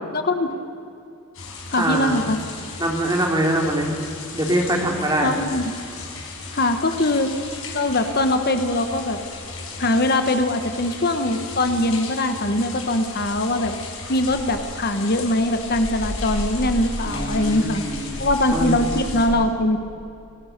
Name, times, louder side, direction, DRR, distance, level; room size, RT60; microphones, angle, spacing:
voice 1, 0.1-0.5 1.7-2.4 5.2-5.7 6.5-7.3 7.7-9.2 9.8-13.7 14.1-17.8 18.2-19.8, left 1 dB, 45° left, 7 dB, 1.3 m, -22 dB
sound 1, 1.3-19.3, left 2 dB, 65° left, 5.0 m, -34 dB
voice 2, 1.8-2.2 2.8-4.0 4.3-5.3 17.0-18.2 18.5-18.8, right 1 dB, 20° right, 1 dB, 3.0 m, -23 dB
27.5 x 17.5 x 6.7 m, 2.7 s
head